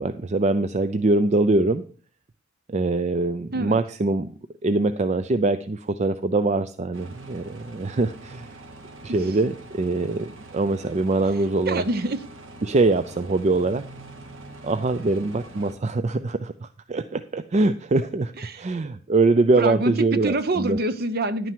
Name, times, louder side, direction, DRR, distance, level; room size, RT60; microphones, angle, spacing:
voice 1, 0.0-1.8 2.7-4.3 4.6-8.6 9.0-11.8 12.6-13.8 14.6-20.8, right 2 dB, 35° right, 11 dB, 0.4 m, -23 dB
sound 1, 6.9-15.8, right 2 dB, 70° right, 1.6 m, -44 dB
voice 2, 11.7-12.2 18.4-18.6 19.6-21.5, right 2 dB, 50° right, 12 dB, 0.8 m, -26 dB
11.0 x 9.1 x 4.6 m, 0.41 s
head